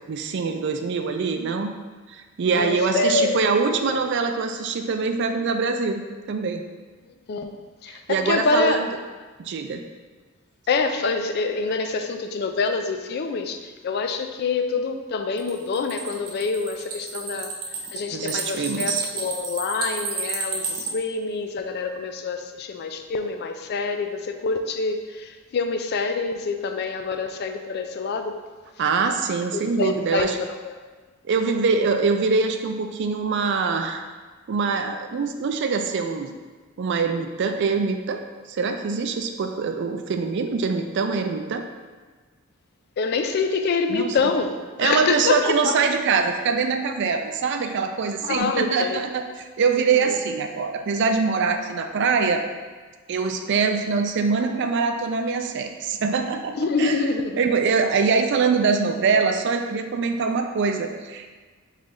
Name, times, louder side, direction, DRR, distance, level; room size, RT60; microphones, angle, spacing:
voice 1, 0.1-1.7 2.1-6.0 6.3-6.6 7.9-8.9 9.4-9.8 18.1-19.1 28.8-30.4 31.2-34.0 34.5-36.3 36.8-38.2 38.5-41.6 43.9-44.2 44.8-49.2 49.6-52.4 53.1-61.3, right 5 dB, 55° right, 6 dB, 0.3 m, -24 dB
voice 2, 2.6-3.4 3.7-4.0 7.1-7.5 7.8-8.8 10.7-17.5 17.9-28.4 29.5-30.5 43.0-45.8 47.6-47.7 48.2-49.0 49.9-50.1 56.5-57.4, left 4 dB, 50° left, 7 dB, 0.3 m, -26 dB
sound 1, 15.4-20.9, right 4 dB, 90° right, 0.7 m, -31 dB
3.9 x 3.2 x 3.6 m, 1.4 s
head